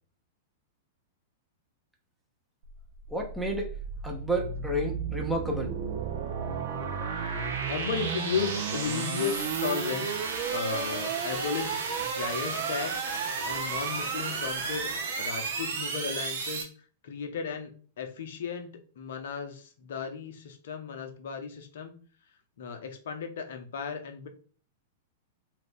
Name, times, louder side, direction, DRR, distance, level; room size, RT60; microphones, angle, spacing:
sound 1, 2.6-16.6, right 5 dB, 65° right, 0.7 m, -32 dB
voice 1, 3.1-3.7 4.0-5.7, right 1 dB, 5° right, 0 dB, 0.7 m, -30 dB
voice 2, 7.7-10.2 10.5-13.1 13.4-14.9 15.2-16.7 17.0-21.9 22.6-24.3, left 6 dB, 65° left, 6 dB, 0.6 m, -35 dB
2.7 x 2.5 x 3.5 m, 0.42 s
hypercardioid pair, 105°, 0 cm